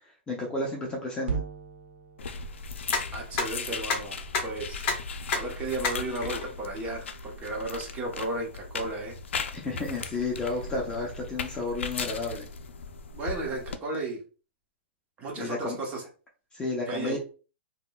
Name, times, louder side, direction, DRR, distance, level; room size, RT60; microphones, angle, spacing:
voice 1, 0.3-1.4 9.6-12.5 15.3-15.8 16.5-17.2, left 2 dB, 15° left, -1 dB, 0.6 m, -32 dB
sound 1, 1.3-5.6, right 5 dB, 70° right, 1.0 m, -40 dB
sound 2, 2.2-13.8, left 5 dB, 80° left, 0.4 m, -38 dB
sound 3, 2.8-8.0, left 4 dB, 30° left, 0.9 m, -33 dB
voice 2, 3.1-4.9 5.3-9.2 13.1-14.2 15.2-16.1 16.9-17.2, right 2 dB, 20° right, 0 dB, 0.9 m, -34 dB
3.6 x 2.2 x 2.3 m, 0.36 s
hypercardioid pair, 135°, 6 cm